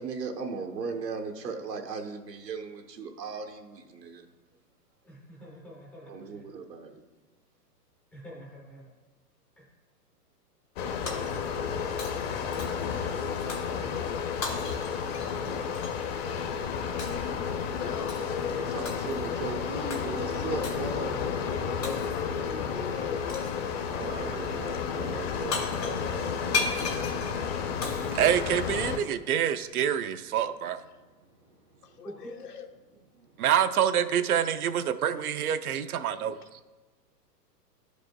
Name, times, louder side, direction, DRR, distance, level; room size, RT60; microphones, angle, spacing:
voice 1, 0.0-4.3 6.0-7.0 18.6-21.2 23.9-27.3, right 4 dB, 80° right, 3 dB, 1.0 m, -38 dB
voice 2, 5.0-6.4 8.1-8.9 9.6-9.7 32.0-32.3, equal, 5° left, -5 dB, 0.4 m, -46 dB
sound 1, 10.8-29.0, left 6 dB, 40° left, 0.7 m, -32 dB
Shatter, 11.1-11.7 12.0-12.9 13.5-13.7 14.4-16.0 17.0-17.3 18.1-18.4 18.8-19.3 19.9-20.1 20.6-20.9 21.8-22.4 23.3-23.7 25.2-25.3 25.5-29.1, left 4 dB, 90° left, 2.2 m, -36 dB
voice 3, 17.8-18.7 21.3-24.0 31.5-32.7, left 7 dB, 70° left, 5 dB, 0.8 m, -43 dB
voice 4, 28.1-30.8 33.4-36.4, right 9 dB, 65° right, 11 dB, 0.5 m, -26 dB
12.0 x 5.0 x 2.2 m, 1.2 s
figure-of-eight pair, 115°, 49 cm